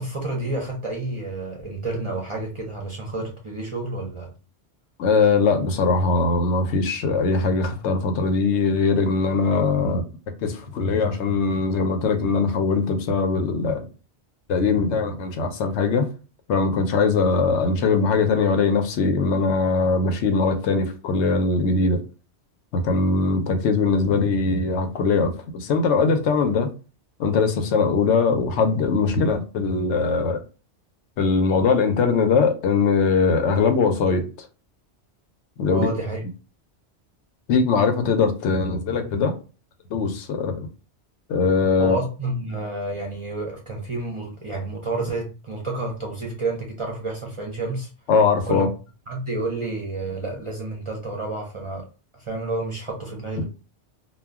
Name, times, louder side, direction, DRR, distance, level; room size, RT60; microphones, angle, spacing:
voice 1, 0.0-4.3 35.7-36.2 41.8-47.9 48.5-48.7 49.1-51.8 52.3-53.4, right 2 dB, 40° right, 0.4 m, -30 dB
voice 2, 5.0-10.0 10.4-13.9 14.5-16.1 16.5-22.0 22.7-26.7 27.2-30.4 31.2-34.5 35.6-35.9 37.5-39.3 39.9-40.7 41.3-42.0 48.1-48.7, left 4 dB, 90° left, 0.9 m, -21 dB
2.2 x 2.2 x 3.4 m
omnidirectional pair, 1.1 m